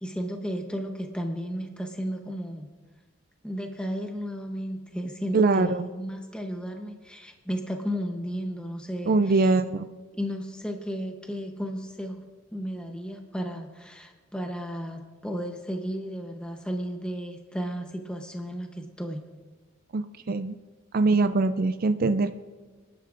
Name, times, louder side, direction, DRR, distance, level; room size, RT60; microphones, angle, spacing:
voice 1, 0.0-2.7 3.4-9.5 10.2-12.2 12.5-19.2, equal, 5° left, 3 dB, 0.8 m, -34 dB
voice 2, 5.3-5.9 9.1-9.9 19.9-20.6 20.9-22.3, right 3 dB, 45° right, 10 dB, 0.4 m, -23 dB
26.5 x 11.0 x 2.5 m, 1.3 s
head